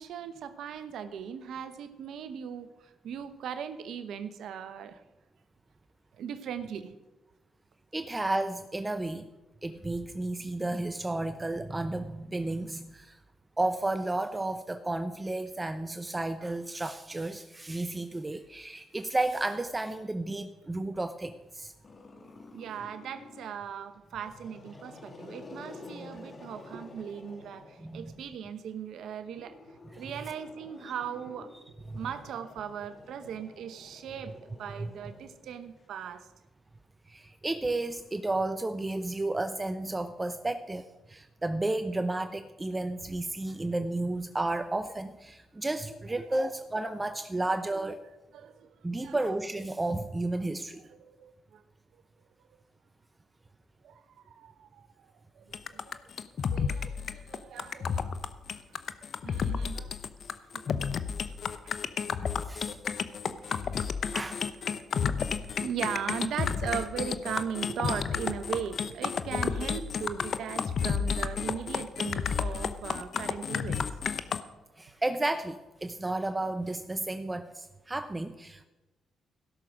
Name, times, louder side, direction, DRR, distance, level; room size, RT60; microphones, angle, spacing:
voice 1, 0.0-2.7 3.0-5.0 6.2-6.9 22.5-29.6 30.0-31.5 31.9-34.3 34.6-36.3 46.1-46.5 48.3-48.7 49.0-49.3 50.9-51.6 53.8-54.8 55.4-56.0 56.5-58.1 58.5-58.6 59.2-60.0 60.5-60.9 61.3-61.4 61.6-62.0 63.3-63.6 65.6-73.9, right 8 dB, 75° right, 11 dB, 0.9 m, -38 dB
voice 2, 7.9-9.3 9.6-13.2 13.6-21.7 27.8-28.1 29.9-30.0 31.9-32.0 34.8-34.9 37.1-48.0 48.8-50.8 62.2-62.8 64.1-64.5 74.8-78.7, right 2 dB, 20° right, 10 dB, 0.7 m, -32 dB
Growling, 21.8-23.6 24.1-28.3 29.3-35.8, left 3 dB, 40° left, 2.7 m, -50 dB
sound 1, 55.5-74.4, left 6 dB, 60° left, 0.7 m, -31 dB
16.0 x 6.6 x 6.2 m, 1.1 s
supercardioid pair, 65°, 0 cm